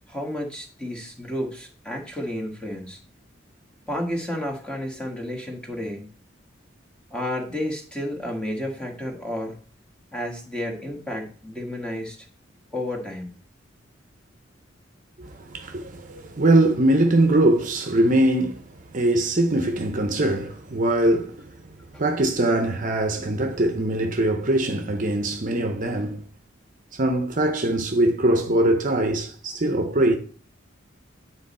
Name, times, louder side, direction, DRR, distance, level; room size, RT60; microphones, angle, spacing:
voice 1, 0.1-3.0 3.9-6.1 7.1-9.6 10.1-12.2 12.7-13.3 21.9-22.0, left 1 dB, 5° left, 1.4 m, -31 dB
voice 2, 15.2-18.6 18.9-21.5 22.0-26.2 26.9-30.2, right 1 dB, 45° right, 0.8 m, -22 dB
9.2 x 4.0 x 4.2 m
head